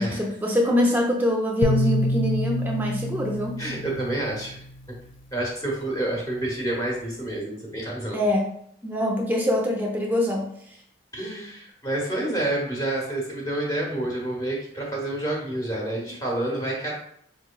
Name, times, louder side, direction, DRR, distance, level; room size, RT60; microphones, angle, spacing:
voice 1, 0.0-3.6 8.1-8.5 8.8-10.5, left 1 dB, 10° right, -1 dB, 0.6 m, -24 dB
sound 1, 1.6-4.9, left 1 dB, 85° left, 0.4 m, -27 dB
voice 2, 3.6-4.6 5.3-8.2 11.1-17.0, right 1 dB, 20° left, -2 dB, 0.9 m, -28 dB
4.5 x 3.0 x 2.3 m, 0.68 s
head